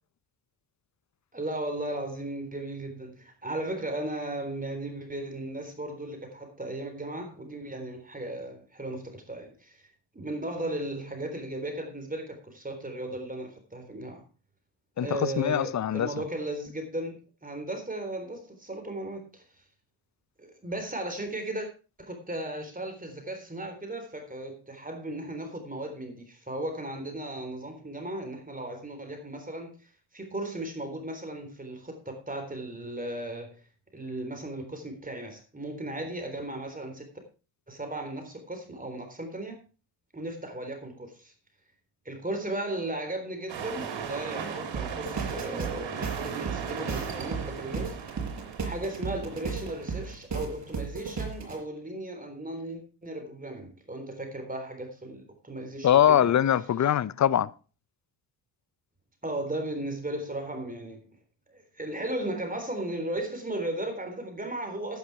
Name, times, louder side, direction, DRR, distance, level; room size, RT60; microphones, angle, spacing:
voice 1, 1.3-9.8 10.1-14.2 15.0-19.4 20.4-21.7 22.0-29.7 30.1-33.6 33.9-37.1 37.7-39.6 40.1-41.3 42.1-48.0 48.6-56.3 59.2-61.0 61.5-65.0, right 1 dB, 20° right, 3.8 m, -36 dB
voice 2, 15.0-16.1 55.8-57.5, left 10 dB, 40° left, 0.6 m, -23 dB
sound 1, 43.5-50.1, right 7 dB, 70° right, 3.2 m, -37 dB
sound 2, 44.7-51.6, right 5 dB, 40° right, 5.0 m, -35 dB
11.0 x 9.6 x 4.8 m
cardioid pair, 75°, 45 cm